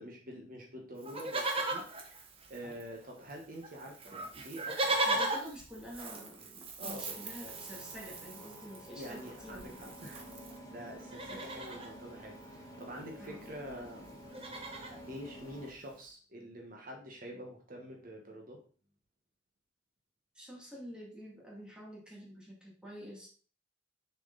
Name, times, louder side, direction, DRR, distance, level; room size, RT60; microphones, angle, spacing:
voice 1, 0.0-1.8 2.5-4.1 4.4-5.4 6.8-7.3 8.9-10.2 10.7-14.3 15.1-18.6, equal, 50° right, 0 dB, 1.2 m, -46 dB
Livestock farm animals working animals, 1.0-3.0 3.3-3.4 3.6-10.6 11.0-11.9 13.1-13.2 13.4-13.7 14.0-15.0 15.6-15.7, right 2 dB, 30° right, 1.0 m, -38 dB
voice 2, 5.0-10.1 11.3-11.5 13.2-13.6 20.3-23.3, equal, 5° right, -4 dB, 2.2 m, -48 dB
sound 1, 6.8-15.7, equal, 20° left, 1.3 m, -51 dB
6.4 x 4.7 x 3.9 m, 0.41 s
head